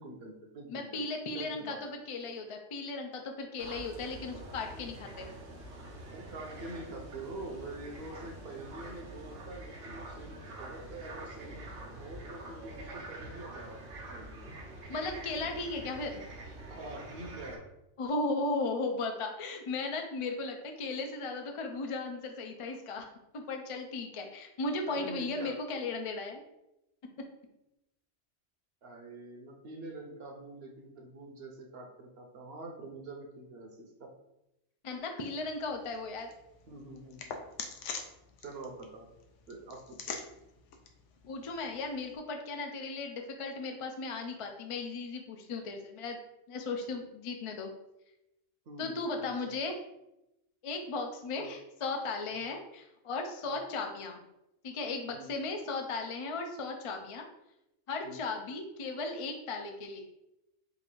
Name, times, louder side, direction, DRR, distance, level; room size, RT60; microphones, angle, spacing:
voice 1, 0.0-1.0 1.3-1.8 6.1-11.6 12.0-13.8 14.1-14.5 16.7-17.6 24.9-25.6 28.8-34.1 36.7-37.4 38.4-39.1 39.5-40.2 48.7-49.6 51.4-51.5 52.3-52.5 53.4-53.6 55.1-55.3 58.0-58.2, right 2 dB, 60° right, 2 dB, 0.9 m, -45 dB
voice 2, 0.7-5.3 14.9-16.2 18.0-23.1 23.3-26.4 34.8-36.3 41.3-46.2 46.5-47.7 48.8-49.8 50.6-54.2 54.6-57.2 57.9-60.0, left 3 dB, 55° left, 3 dB, 0.3 m, -36 dB
sound 1, 3.6-17.6, right 1 dB, 90° right, 1.2 m, -46 dB
sound 2, 35.4-42.2, left 5 dB, 80° left, 0.9 m, -46 dB
4.0 x 2.5 x 4.5 m, 0.89 s
omnidirectional pair, 1.2 m